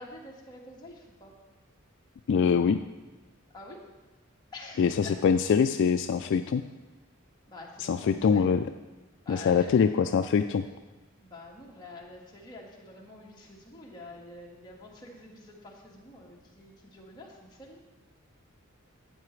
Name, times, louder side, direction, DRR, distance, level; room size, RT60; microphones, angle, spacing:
voice 1, 0.0-1.3 3.5-3.8 4.5-5.1 7.5-8.5 9.2-9.8 11.2-17.8, left 2 dB, 20° left, -3 dB, 1.6 m, -47 dB
voice 2, 2.3-2.8 4.8-6.6 7.8-8.6 9.3-10.6, left 6 dB, 60° left, 9 dB, 0.3 m, -24 dB
12.5 x 8.5 x 3.2 m, 1.2 s
head